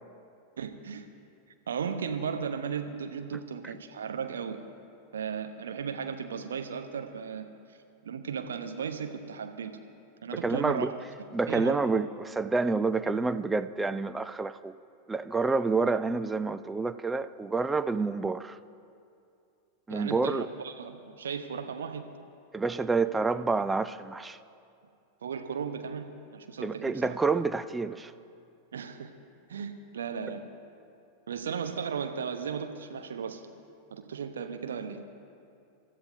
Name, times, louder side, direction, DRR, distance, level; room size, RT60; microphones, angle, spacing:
voice 1, 0.6-1.1 1.7-4.6 5.1-7.4 8.0-9.7 10.2-10.9 11.5-11.8 19.9-22.0 25.2-27.2 28.7-29.1 29.5-30.4 31.3-33.4 33.9-35.0, right 6 dB, 65° right, 6 dB, 0.9 m, -35 dB
voice 2, 10.3-10.9 11.3-14.7 15.1-18.6 19.9-20.5 22.5-24.4 26.6-28.1, right 4 dB, 10° right, 12 dB, 0.4 m, -28 dB
26.0 x 13.5 x 2.7 m, 2.5 s
figure-of-eight pair, 90°, 0 cm